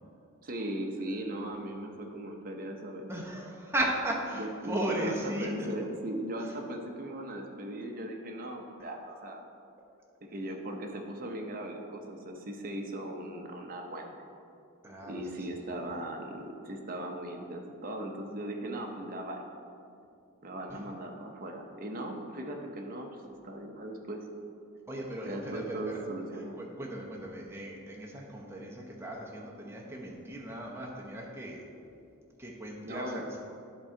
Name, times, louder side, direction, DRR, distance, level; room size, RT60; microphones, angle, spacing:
voice 1, 0.4-3.1 4.3-9.5 10.2-14.2 15.1-19.4 20.4-23.1 23.4-24.2 25.3-26.6 32.8-33.3, right 1 dB, 40° right, 2 dB, 0.7 m, -38 dB
voice 2, 1.3-1.6 3.1-5.7 6.4-6.6 14.8-15.2 15.5-15.9 20.7-20.8 24.9-26.0 26.6-31.7 32.4-33.4, right 1 dB, 10° right, -3 dB, 0.8 m, -36 dB
10.5 x 3.7 x 4.4 m, 2.5 s
head